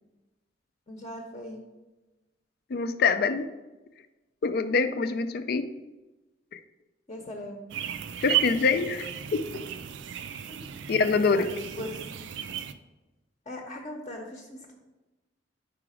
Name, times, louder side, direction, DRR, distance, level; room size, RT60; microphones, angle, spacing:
voice 1, 0.9-1.6 7.1-7.8 10.5-10.6 11.3-12.3 13.5-14.7, left 1 dB, 35° left, 1 dB, 0.8 m, -39 dB
voice 2, 2.7-3.5 4.4-5.6 6.5-6.6 8.2-9.1 10.9-11.4, left 4 dB, 55° left, 11 dB, 0.4 m, -24 dB
sound 1, 7.7-12.7, right 11 dB, 70° right, 0.4 m, -34 dB
5.0 x 4.8 x 4.9 m, 1.1 s
head